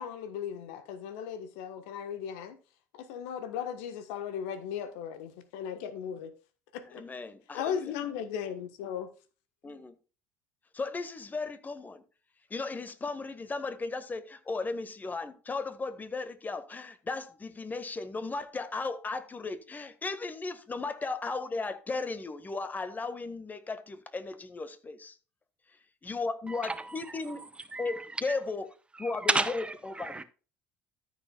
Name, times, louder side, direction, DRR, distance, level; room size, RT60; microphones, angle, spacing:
voice 1, 0.0-2.6 2.9-6.3 6.7-7.0 7.5-9.1 9.7-9.8, left 8 dB, 70° left, 1.3 m, -37 dB
voice 2, 6.9-7.9 9.6-9.9 10.7-12.0 12.5-25.2 26.0-27.4 27.8-28.7 29.0-30.2, left 3 dB, 25° left, 1.7 m, -36 dB
voice 3, 27.7-28.4 29.0-30.2, right 2 dB, 15° right, 0.8 m, -32 dB
13.5 x 7.4 x 2.4 m
hypercardioid pair, 60°, 7 cm